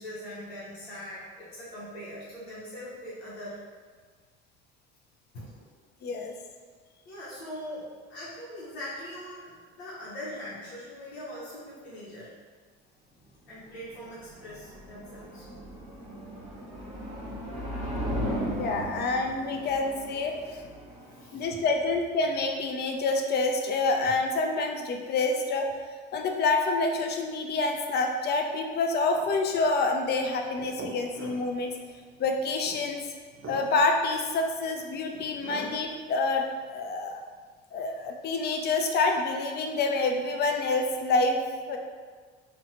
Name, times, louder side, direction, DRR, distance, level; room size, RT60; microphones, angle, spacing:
voice 1, 0.0-3.6 5.3-5.6 7.1-12.4 13.5-15.5 21.0-21.6, equal, 85° left, -8 dB, 0.7 m, -41 dB
voice 2, 6.0-6.3 18.5-20.3 21.3-25.7 26.1-31.7 32.2-33.0 33.5-37.2 37.7-41.4 41.7-41.8, left 3 dB, 35° left, 3 dB, 0.4 m, -27 dB
sound 1, 13.6-22.6, equal, 25° right, 1.0 m, -37 dB
sound 2, 29.1-36.0, right 2 dB, 40° right, 0.6 m, -44 dB
2.6 x 2.1 x 2.8 m, 1.5 s
hypercardioid pair, 65°, 31 cm